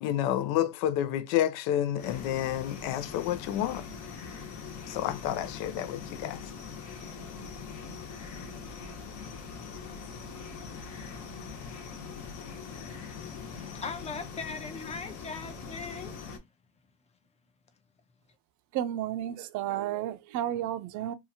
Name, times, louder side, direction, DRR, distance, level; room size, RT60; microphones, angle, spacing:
voice 1, 0.0-3.8 4.9-6.4, left 11 dB, 90° left, 0.5 m, -29 dB
sound 1, 2.0-16.4, left 5 dB, 60° left, 1.0 m, -42 dB
voice 2, 13.5-16.1, left 4 dB, 20° left, 0.5 m, -39 dB
voice 3, 18.7-21.1, right 12 dB, 60° right, 0.5 m, -32 dB
2.7 x 2.4 x 2.7 m
cardioid pair, 135°, 33 cm